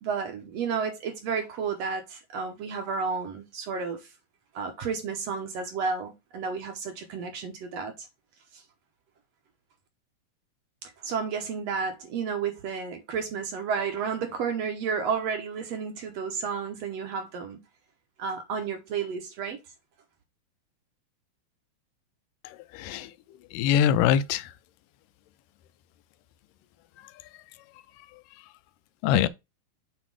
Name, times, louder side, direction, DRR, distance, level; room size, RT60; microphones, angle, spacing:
voice 1, 0.0-4.1 4.5-8.1 8.5-8.6 10.8-17.6 18.2-19.6, right 5 dB, 65° right, 1.8 m, -32 dB
voice 2, 22.7-23.1 23.5-24.5 29.0-29.3, left 9 dB, 85° left, 2.2 m, -23 dB
7.5 x 3.4 x 4.8 m
omnidirectional pair, 3.7 m